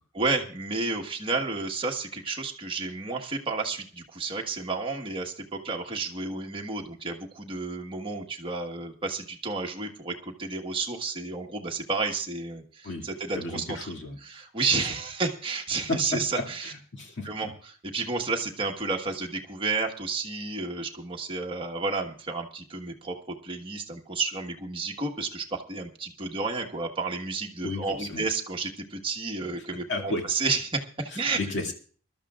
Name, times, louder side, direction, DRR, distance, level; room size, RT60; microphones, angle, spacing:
voice 1, 0.1-13.9 14.2-16.7 17.2-17.5 17.9-31.4, right 3 dB, 25° right, 1 dB, 1.4 m, -31 dB
voice 2, 13.4-14.2 15.9-16.0 16.3-17.3 27.6-28.2 29.9-30.2 31.1-31.7, left 2 dB, 55° left, 1 dB, 2.4 m, -33 dB
24.5 x 12.5 x 2.4 m, 0.42 s
head